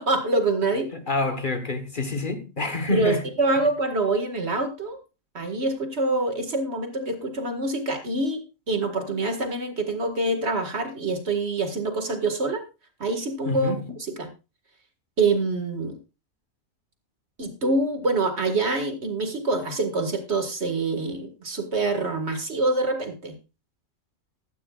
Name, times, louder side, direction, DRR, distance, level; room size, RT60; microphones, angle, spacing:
voice 1, 0.0-0.9 2.9-5.0 5.3-12.6 13.0-13.7 14.2-14.3 15.2-16.0 17.4-23.4, right 2 dB, 55° right, 2.2 m, -25 dB
voice 2, 0.9-3.2 13.4-13.9, left 2 dB, 40° left, 1.4 m, -27 dB
15.0 x 13.5 x 2.4 m
omnidirectional pair, 1.3 m